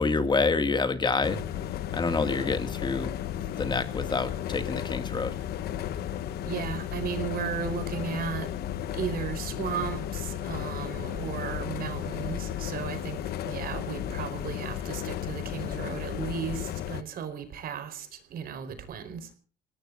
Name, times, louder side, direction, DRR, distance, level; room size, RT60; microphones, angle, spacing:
voice 1, 0.0-1.4 1.9-3.1 3.6-5.4, left 4 dB, 25° left, 2.1 m, -27 dB
sound 1, 1.2-17.0, left 11 dB, 70° left, 1.1 m, -34 dB
voice 2, 6.4-8.5 9.0-19.2, right 8 dB, 60° right, 4.5 m, -35 dB
29.0 x 18.0 x 2.6 m
cardioid pair, 110°, 17 cm